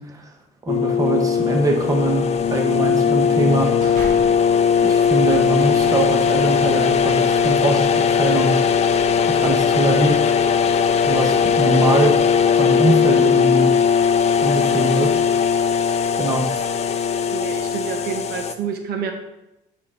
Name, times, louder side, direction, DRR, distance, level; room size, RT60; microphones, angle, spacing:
sound 1, 0.7-18.5, left 7 dB, 40° left, 0.5 m, -19 dB
voice 1, 0.7-3.9 4.8-8.9 9.3-10.2 11.0-12.2 12.6-13.7 14.4-15.1 16.2-16.5, right 2 dB, 20° right, 2 dB, 1.0 m, -22 dB
sound 2, 3.6-4.5 5.0-7.9, right 1 dB, 55° right, 1.8 m, -39 dB
voice 2, 17.3-19.1, right 7 dB, 75° right, 4 dB, 1.0 m, -28 dB
8.7 x 4.1 x 3.7 m, 0.91 s
cardioid pair, 110°, 17 cm